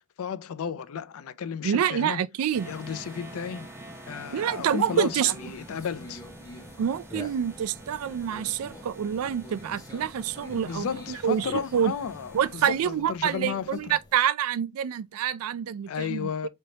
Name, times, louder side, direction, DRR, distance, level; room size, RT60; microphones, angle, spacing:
voice 1, 0.0-2.2 2.6-3.7 4.1-6.2 10.6-14.0 15.9-16.5, left 7 dB, 70° left, 0.4 m, -33 dB
voice 2, 1.6-2.7 4.3-5.3 6.8-11.5 11.7-11.9 12.3-16.5, right 9 dB, 75° right, 0.3 m, -27 dB
sound 1, 2.5-12.9, right 1 dB, 10° right, 0.8 m, -46 dB
Conversation, 5.3-14.1, left 2 dB, 15° left, 0.9 m, -47 dB
3.4 x 2.8 x 3.9 m
head